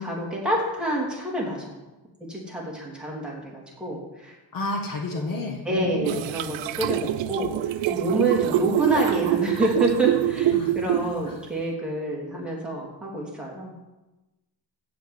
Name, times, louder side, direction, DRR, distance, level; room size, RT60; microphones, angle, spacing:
voice 1, 0.0-1.7 2.3-4.3 5.3-13.7, right 1 dB, ahead, -4 dB, 3.1 m, -28 dB
voice 2, 4.5-6.2 10.5-10.8 11.2-11.4, left 2 dB, 50° left, 2 dB, 1.6 m, -31 dB
sound 1, 6.1-11.4, right 13 dB, 85° right, 0.6 m, -25 dB
15.0 x 5.1 x 7.9 m, 1.1 s
cardioid pair, 160°, 43 cm